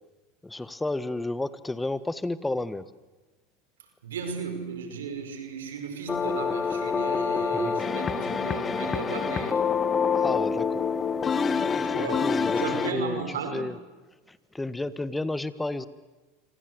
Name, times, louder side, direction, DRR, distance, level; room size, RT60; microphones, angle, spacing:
voice 1, 0.4-2.9 7.5-8.0 10.1-10.9 11.8-13.2 13.5-13.7 14.3-15.9, left 2 dB, 10° left, 14 dB, 1.6 m, -32 dB
voice 2, 4.0-9.8 11.8-13.7, right 5 dB, 90° right, 6 dB, 5.2 m, -35 dB
sound 1, 6.1-12.9, left 6 dB, 25° left, 1.6 m, -26 dB
28.0 x 25.5 x 8.0 m, 1.2 s
hypercardioid pair, 100°, 0 cm